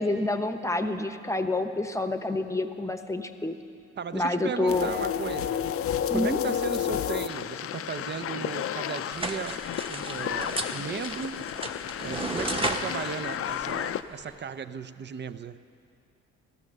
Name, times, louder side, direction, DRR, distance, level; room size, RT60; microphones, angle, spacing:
voice 1, 0.0-3.6 4.1-4.9 6.1-6.4, left 2 dB, 10° left, 8 dB, 0.9 m, -28 dB
voice 2, 4.0-5.6 6.1-9.6 9.9-11.4 12.0-15.6, right 7 dB, 35° right, 12 dB, 0.6 m, -36 dB
sound 1, 4.7-14.0, left 9 dB, 50° left, 0.5 m, -31 dB
sound 2, 9.1-14.4, right 1 dB, 20° right, 1.2 m, -35 dB
16.0 x 13.0 x 6.6 m, 2.6 s
cardioid pair, 90°, 30 cm